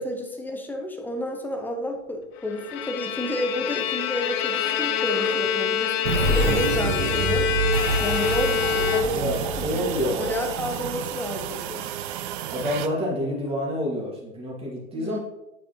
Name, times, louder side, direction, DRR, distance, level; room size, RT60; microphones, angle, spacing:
voice 1, 0.0-7.5 8.0-11.9 14.9-15.2, left 1 dB, 5° left, 3 dB, 0.9 m, -31 dB
Bowed string instrument, 2.5-9.5, left 7 dB, 20° left, 0.3 m, -26 dB
sound 1, 6.0-11.6, right 2 dB, 70° right, 1.4 m, -27 dB
sound 2, 7.7-12.9, right 11 dB, 40° right, 0.5 m, -33 dB
voice 2, 9.1-10.3 12.5-15.2, left 1 dB, 15° right, -4 dB, 2.6 m, -28 dB
9.1 x 6.1 x 3.2 m, 0.94 s
hypercardioid pair, 115°, 41 cm